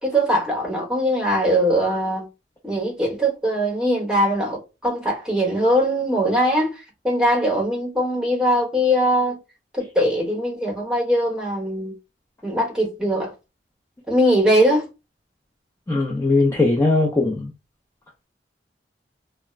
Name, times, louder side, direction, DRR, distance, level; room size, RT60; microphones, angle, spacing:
voice 1, 0.0-2.3 2.6-9.4 9.7-11.9 12.4-13.3 14.1-14.9, equal, 5° right, 1.0 m, -21 dB
voice 2, 15.9-17.5, left 2 dB, 15° left, 0.4 m, -19 dB
2.3 x 2.1 x 3.0 m
head